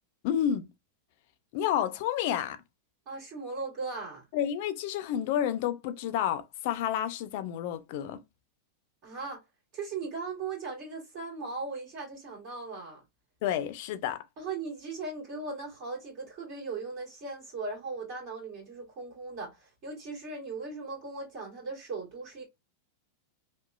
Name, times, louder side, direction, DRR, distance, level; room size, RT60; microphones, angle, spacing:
voice 1, 0.2-0.7 1.5-2.6 4.3-8.2 13.4-14.2, left 10 dB, 60° left, 0.4 m, -30 dB
voice 2, 3.0-4.2 9.0-9.4 9.7-13.0 14.4-22.4, right 4 dB, 50° right, 1.7 m, -38 dB
2.9 x 2.2 x 2.3 m
hypercardioid pair, 115°, 0 cm